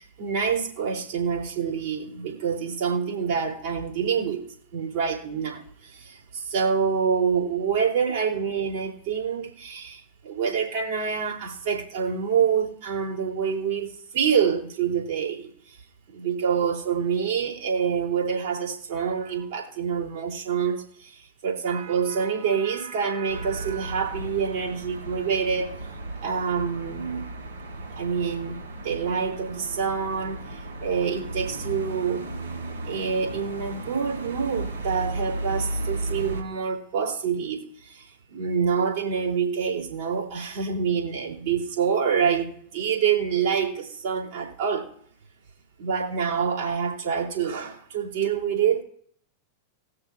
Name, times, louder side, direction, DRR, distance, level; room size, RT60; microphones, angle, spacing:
voice 1, 0.2-4.4 4.7-5.6 6.5-10.0 10.2-15.5 16.1-20.8 21.4-25.7 26.2-27.2 27.9-28.6 28.8-30.4 30.8-32.2 32.8-37.6 38.3-42.5 42.7-44.8 45.8-48.8, right 6 dB, 50° right, -3 dB, 3.1 m, -26 dB
sound 1, 23.3-36.4, right 2 dB, 70° right, 3.0 m, -35 dB
19.5 x 6.7 x 2.5 m, 0.62 s
figure-of-eight pair, 90°, 0 cm